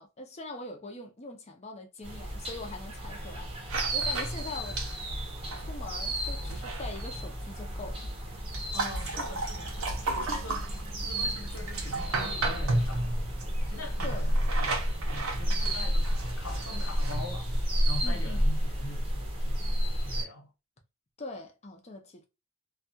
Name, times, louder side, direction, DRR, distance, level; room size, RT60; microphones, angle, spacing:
voice 1, 0.0-4.8 5.6-8.1 14.0-14.3 18.0-18.5 21.2-22.2, left 2 dB, 30° left, 0.6 m, -42 dB
sound 1, 2.0-20.3, equal, 25° right, 0.7 m, -32 dB
sound 2, 3.7-19.4, right 2 dB, 75° right, 0.7 m, -35 dB
voice 2, 8.7-9.7 10.0-10.6 11.0-13.2 13.6-14.8 15.1-17.5 17.9-19.6 20.0-20.5, left 1 dB, 85° left, 1.0 m, -42 dB
2.3 x 2.3 x 2.6 m
head